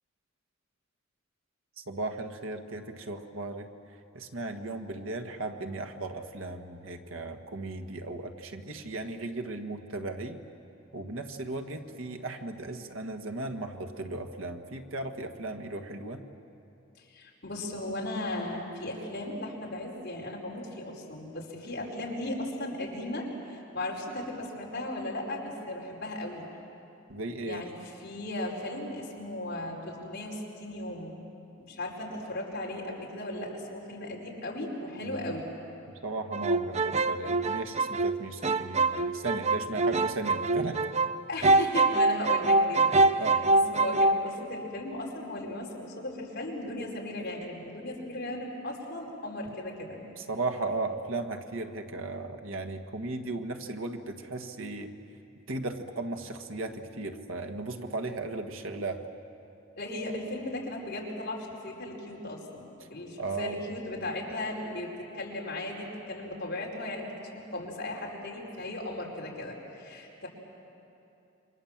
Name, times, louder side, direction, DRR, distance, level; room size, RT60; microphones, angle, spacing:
voice 1, 1.9-3.7 4.1-10.4 10.9-16.2 27.1-27.6 35.0-35.3 36.0-40.8 43.2-43.4 50.3-54.9 55.5-59.0 63.2-63.6, right 2 dB, 90° right, 6 dB, 1.6 m, -36 dB
voice 2, 17.0-26.4 27.4-31.2 31.6-35.5 41.3-50.0 59.8-70.3, left 1 dB, 55° left, -2 dB, 4.9 m, -37 dB
sound 1, 36.3-41.2 41.4-44.2, right 2 dB, 35° right, 0.5 m, -24 dB
28.0 x 25.0 x 7.4 m, 2.8 s
head